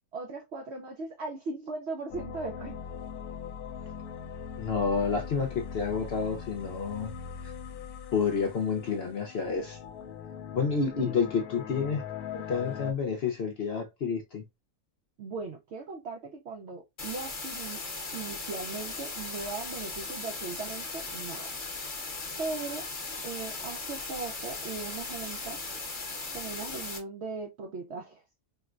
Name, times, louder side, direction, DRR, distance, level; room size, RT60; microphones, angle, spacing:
voice 1, 0.1-2.8 11.0-11.2 15.2-17.8 18.1-21.5 22.4-22.9 23.2-25.6 26.3-28.2, right 4 dB, 70° right, 0.6 m, -38 dB
sound 1, 2.1-12.9, left 7 dB, 75° left, 1.0 m, -41 dB
voice 2, 4.6-7.1 7.4-7.5 8.1-9.8 10.5-12.0 12.3-14.4, left 5 dB, 60° left, 0.7 m, -29 dB
sound 2, 17.0-27.0, left 3 dB, 35° left, 1.0 m, -38 dB
4.3 x 2.1 x 2.3 m
omnidirectional pair, 1.6 m